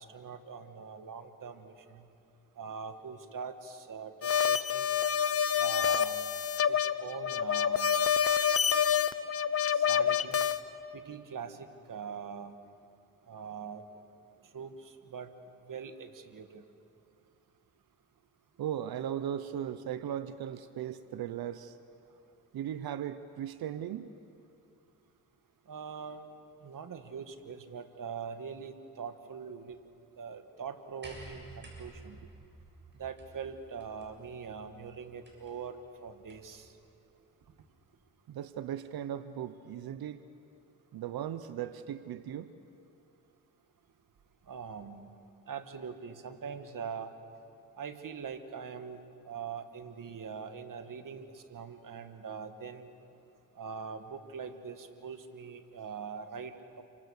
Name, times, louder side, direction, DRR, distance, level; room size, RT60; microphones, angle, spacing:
voice 1, 0.0-2.0 2.6-4.9 5.6-6.2 6.7-7.9 9.7-10.4 10.9-12.5 13.3-13.8 14.5-15.3 15.7-16.6 25.7-26.3 26.6-29.8 30.2-32.2 33.0-36.7 44.5-45.1 45.5-47.1 47.8-49.0 49.3-52.9 53.6-56.8, right 6 dB, 60° right, 8 dB, 1.9 m, -42 dB
sound 1, 4.2-10.6, left 8 dB, 40° left, 0.9 m, -27 dB
voice 2, 18.6-21.8 22.5-24.1 38.3-40.2 40.9-42.5, right 10 dB, 85° right, 12 dB, 0.9 m, -37 dB
sound 2, 31.0-36.6 37.7-37.8, right 2 dB, 30° right, 7.2 m, -52 dB
29.0 x 24.5 x 6.6 m, 2.5 s
cardioid pair, 70°, 36 cm